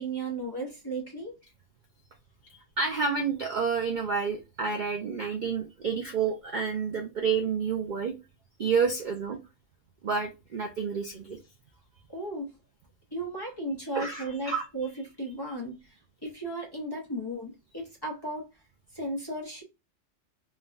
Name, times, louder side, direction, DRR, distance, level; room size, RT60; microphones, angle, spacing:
voice 1, 0.0-1.3 12.1-12.5 13.1-14.9 15.2-18.4 18.9-19.6, right 2 dB, 25° left, 0.7 m, -35 dB
voice 2, 2.8-8.1 8.6-9.4 10.0-11.4 13.9-14.6, right 5 dB, 60° right, 0.5 m, -29 dB
3.3 x 2.1 x 2.4 m
omnidirectional pair, 1.3 m